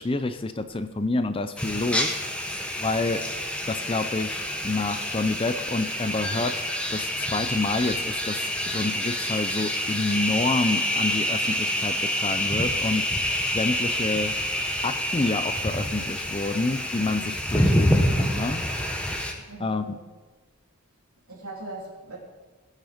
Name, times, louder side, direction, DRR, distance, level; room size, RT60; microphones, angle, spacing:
voice 1, 0.0-2.1 2.8-3.2 3.7-6.6 6.9-13.1 13.5-14.3 14.8-18.6 19.6-20.0, left 2 dB, 25° left, 10 dB, 0.5 m, -28 dB
sound 1, 1.6-19.3, equal, 5° left, 1.2 m, -27 dB
voice 2, 19.5-20.1 21.3-22.2, right 2 dB, 80° right, -3 dB, 3.1 m, -40 dB
19.0 x 6.6 x 5.1 m, 1.3 s
head